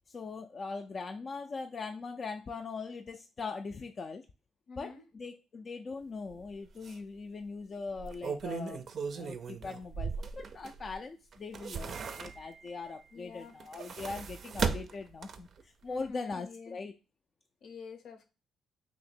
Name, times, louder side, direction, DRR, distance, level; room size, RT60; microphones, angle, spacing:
voice 1, 0.1-4.2 4.8-8.8 9.1-16.9, left 4 dB, 40° left, 0.4 m, -41 dB
voice 2, 4.7-5.0 13.1-13.6 15.9-16.8 17.6-18.3, left 5 dB, 70° left, 0.7 m, -48 dB
sound 1, 6.3-6.4 6.8-6.9 7.9-10.9 11.3-12.7 13.5-15.6 16.0-16.1, right 5 dB, 55° right, 0.4 m, -37 dB
2.9 x 2.8 x 4.2 m
cardioid pair, 90°, 0 cm